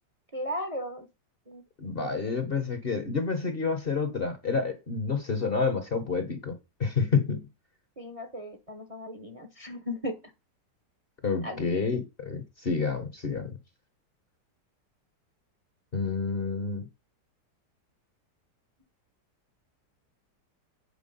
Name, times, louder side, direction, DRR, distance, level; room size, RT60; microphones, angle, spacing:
voice 1, 0.3-1.1 1.5-2.4 8.0-10.2 11.4-11.8, left 1 dB, 25° right, 1.0 m, -37 dB
voice 2, 1.8-7.5 11.2-13.5 15.9-16.9, left 4 dB, 35° left, 1.1 m, -29 dB
8.4 x 4.6 x 5.4 m
omnidirectional pair, 1.8 m